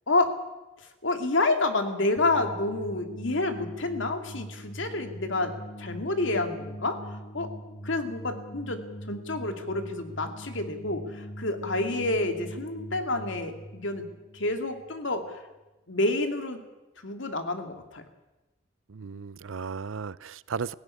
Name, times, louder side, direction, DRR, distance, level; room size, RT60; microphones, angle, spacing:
voice 1, 0.8-5.5 5.8-7.0 7.3-7.5 7.8-8.8 9.1-14.1 14.3-15.4 15.9-16.6 17.0-18.0, left 2 dB, 70° left, 6 dB, 2.3 m, -28 dB
sound 1, 2.2-15.3, right 1 dB, 90° left, 1.8 m, -42 dB
voice 2, 18.9-20.7, right 5 dB, 85° right, 19 dB, 0.6 m, -35 dB
16.5 x 16.0 x 9.7 m, 1.1 s
head